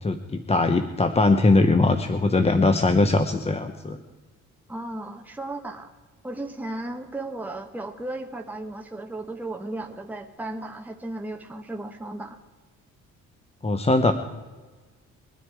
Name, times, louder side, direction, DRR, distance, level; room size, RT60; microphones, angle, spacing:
voice 1, 0.0-4.0 13.6-14.1, left 2 dB, 20° left, 8 dB, 0.8 m, -21 dB
voice 2, 4.7-5.9 6.2-12.4, right 2 dB, 5° right, 4 dB, 1.1 m, -35 dB
22.5 x 9.8 x 4.7 m, 1.4 s
cardioid pair, 90°, 30 cm